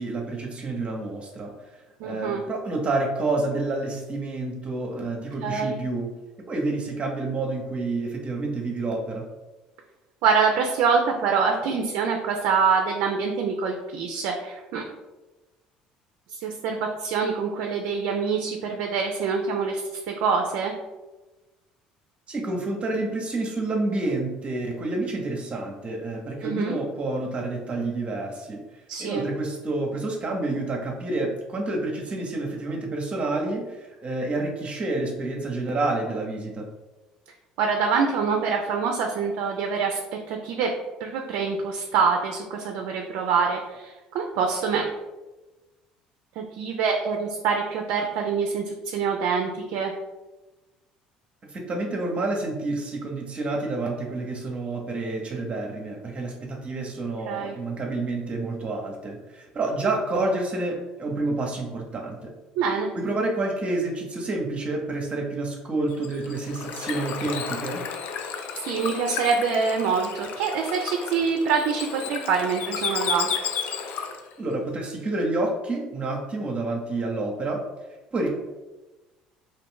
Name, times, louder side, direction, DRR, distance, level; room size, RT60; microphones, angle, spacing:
voice 1, 0.0-1.5 2.0-6.1 6.5-9.3 22.3-28.6 29.0-36.7 51.5-62.3 62.9-67.8 74.4-77.6 78.1-78.3, right 2 dB, 40° right, 1 dB, 0.7 m, -29 dB
voice 2, 2.0-2.4 5.4-5.8 10.2-14.8 16.3-20.7 26.4-26.8 28.9-29.3 37.6-40.7 41.0-44.8 46.4-49.9 57.3-57.6 62.6-62.9 68.5-73.3, right 5 dB, 70° right, 2 dB, 0.4 m, -25 dB
Bird / Water, 65.9-74.3, left 7 dB, 65° left, 0.3 m, -32 dB
2.6 x 2.4 x 3.6 m, 1.1 s
hypercardioid pair, 70°, 3 cm